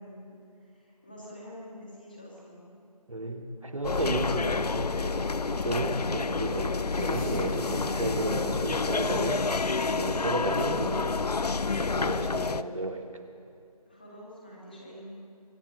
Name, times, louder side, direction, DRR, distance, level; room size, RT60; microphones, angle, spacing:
voice 1, 0.0-2.7 13.9-15.1, equal, 15° left, -5 dB, 1.9 m, -47 dB
voice 2, 3.1-9.4 9.9-11.3 11.8-13.0, right 1 dB, 55° right, 4 dB, 1.5 m, -33 dB
sound 1, 3.8-12.6, left 4 dB, 80° left, 0.5 m, -29 dB
sound 2, 6.9-12.6, left 1 dB, 60° left, 3.1 m, -55 dB
24.0 x 8.9 x 6.1 m, 2.5 s
figure-of-eight pair, 175°, 20 cm